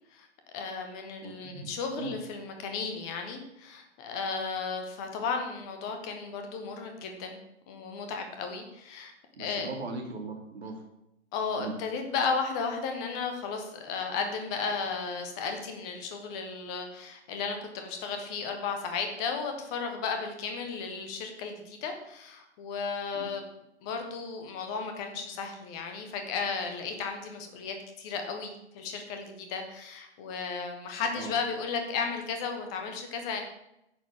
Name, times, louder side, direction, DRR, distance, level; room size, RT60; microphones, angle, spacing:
voice 1, 0.5-7.4 7.7-9.1 9.4-9.7 11.3-23.4 23.8-33.4, left 5 dB, 5° left, 5 dB, 0.3 m, -34 dB
voice 2, 1.2-1.7 2.0-2.1 9.3-10.9 11.6-11.8 23.1-23.3 31.2-31.3, right 3 dB, 65° right, 2 dB, 2.8 m, -39 dB
10.5 x 7.1 x 6.9 m, 0.83 s
figure-of-eight pair, 130°, 34 cm